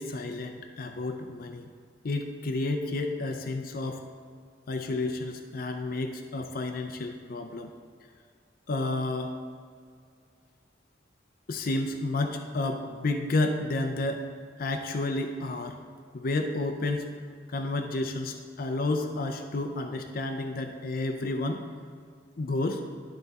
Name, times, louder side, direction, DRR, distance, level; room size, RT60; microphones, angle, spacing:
voice 1, 0.0-1.7 2.0-4.0 4.7-7.7 8.7-9.3 11.5-14.3 14.6-15.8 16.1-17.1 17.5-21.6 22.4-22.8, left 2 dB, 50° left, 5 dB, 0.5 m, -31 dB
12.0 x 4.0 x 4.1 m, 2.1 s
head